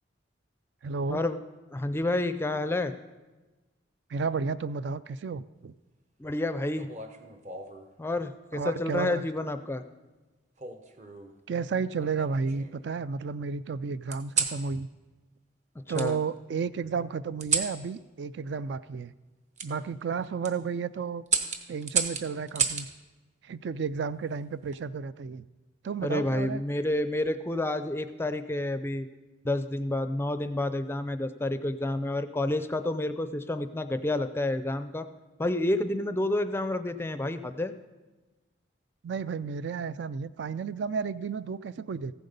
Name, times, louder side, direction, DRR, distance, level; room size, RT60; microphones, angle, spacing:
voice 1, 0.8-1.2 4.1-5.7 8.5-9.2 11.5-14.9 15.9-19.1 19.6-21.2 21.7-22.9 23.4-25.5 25.8-26.6 39.0-42.1, right 5 dB, 60° right, 16 dB, 0.3 m, -32 dB
voice 2, 1.7-2.9 6.2-6.9 8.0-9.8 15.9-16.2 26.0-29.1 29.4-35.1 35.4-37.7, left 1 dB, 10° left, 10 dB, 0.4 m, -29 dB
sound 1, 6.7-7.9 8.9-9.3 10.6-11.3 12.0-12.9 14.1-14.6 15.9-16.1 17.4-17.8 19.6-19.7 20.2-20.5 21.3-22.9 24.4-24.8, right 5 dB, 35° right, 0.9 m, -31 dB
15.0 x 7.8 x 5.3 m, 1.2 s
head